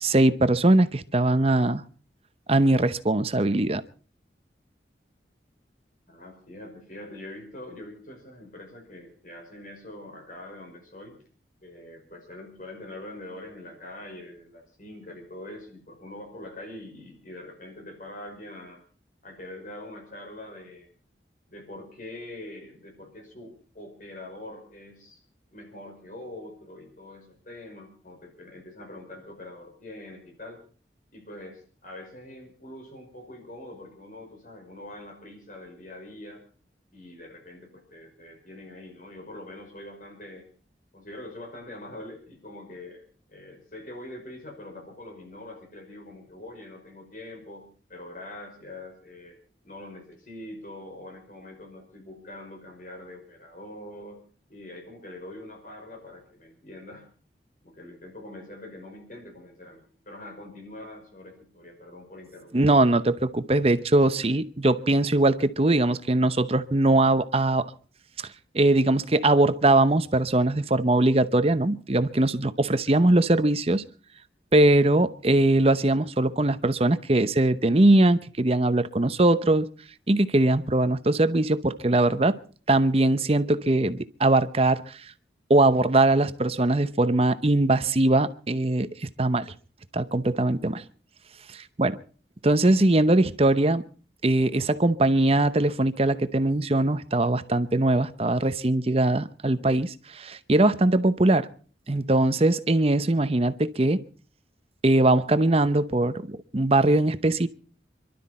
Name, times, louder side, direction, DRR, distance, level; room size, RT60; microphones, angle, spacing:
voice 1, 0.0-1.8 2.5-3.8 62.5-67.7 68.5-73.8 74.5-79.7 80.1-82.4 82.7-84.8 85.5-88.9 89.2-89.5 89.9-90.8 91.8-92.0 92.4-93.8 94.2-101.5 101.9-104.0 104.8-107.5, right 2 dB, 35° right, 0.8 m, -21 dB
voice 2, 6.1-11.2 11.6-18.8 19.2-20.9 21.5-25.2 25.5-30.6 31.1-36.4 36.9-40.5 40.9-57.1 57.6-62.7, left 1 dB, 50° left, 5.5 m, -44 dB
27.0 x 12.5 x 4.3 m
head